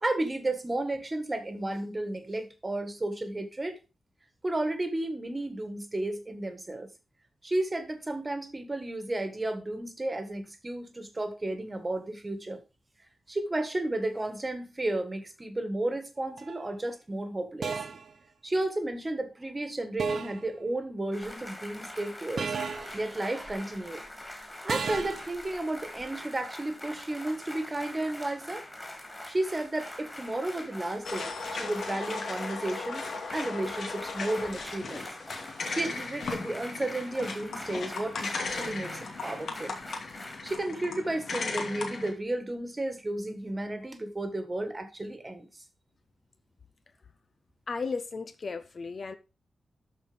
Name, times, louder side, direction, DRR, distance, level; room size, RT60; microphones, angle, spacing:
voice 1, 0.0-3.8 4.4-6.9 7.4-12.6 13.3-17.8 18.4-24.0 24.4-28.6 29.3-35.1 35.7-39.8 40.4-45.5, right 1 dB, 20° right, 1.6 m, -33 dB
sound 1, 16.4-16.6 17.6-18.1 20.0-20.5 22.4-23.0 24.7-25.3, right 5 dB, 55° right, 1.1 m, -33 dB
sound 2, 21.1-40.6, left 1 dB, 10° left, 2.6 m, -44 dB
sound 3, 31.0-42.1, left 4 dB, 65° left, 2.4 m, -37 dB
voice 2, 47.7-49.2, left 4 dB, 45° left, 0.7 m, -35 dB
13.0 x 4.7 x 5.1 m
wide cardioid pair, 155°, 0 cm